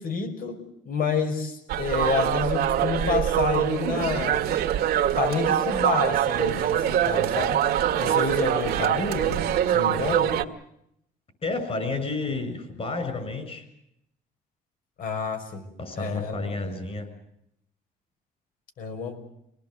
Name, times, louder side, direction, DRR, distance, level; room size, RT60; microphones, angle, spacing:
voice 1, 0.0-4.4 5.2-7.6 8.0-9.4 9.7-10.3 15.0-15.6 16.0-16.5 18.8-19.2, left 5 dB, 60° left, 6 dB, 5.6 m, -29 dB
sound 1, 1.7-10.4, right 10 dB, 70° right, 1.9 m, -24 dB
voice 2, 11.4-13.7 15.8-17.1, left 3 dB, 35° left, 9 dB, 7.0 m, -31 dB
25.0 x 19.0 x 8.2 m, 0.77 s
cardioid pair, 110°, 17 cm